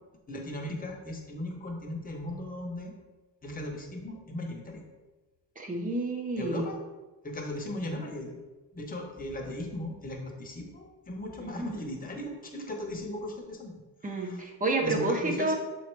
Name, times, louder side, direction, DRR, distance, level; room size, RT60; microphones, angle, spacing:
voice 1, 0.3-2.9 3.4-4.8 6.4-6.8 7.2-8.4 8.7-13.7 14.2-14.4 14.8-15.5, left 1 dB, 20° left, 1 dB, 0.8 m, -37 dB
voice 2, 5.6-6.7 11.4-11.7 14.0-15.5, right 2 dB, 20° right, 2 dB, 0.7 m, -30 dB
6.8 x 3.2 x 4.5 m, 1.2 s
wide cardioid pair, 175°, 42 cm